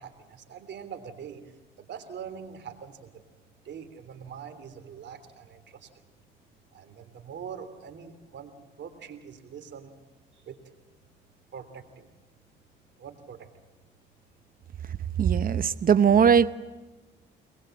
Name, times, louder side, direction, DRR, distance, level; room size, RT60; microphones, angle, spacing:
voice 1, 0.0-3.2 3.6-5.9 6.7-9.9 10.3-10.7 11.5-12.1 13.0-13.5, right 7 dB, 65° right, 9 dB, 3.2 m, -43 dB
voice 2, 15.2-16.5, right 7 dB, 45° right, 14 dB, 1.0 m, -20 dB
23.0 x 20.5 x 7.8 m, 1.2 s
cardioid pair, 90°, 20 cm